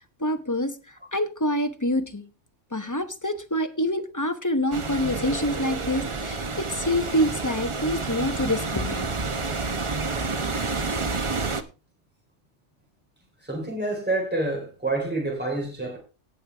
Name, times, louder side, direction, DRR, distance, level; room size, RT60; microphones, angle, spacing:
voice 1, 0.2-2.2 2.7-9.1, left 1 dB, 15° left, 1.0 m, -26 dB
sound 1, 4.7-11.6, right 3 dB, 30° right, 0.8 m, -29 dB
voice 2, 13.4-16.0, right 2 dB, 10° right, 4.2 m, -28 dB
18.0 x 6.6 x 3.4 m
omnidirectional pair, 1.3 m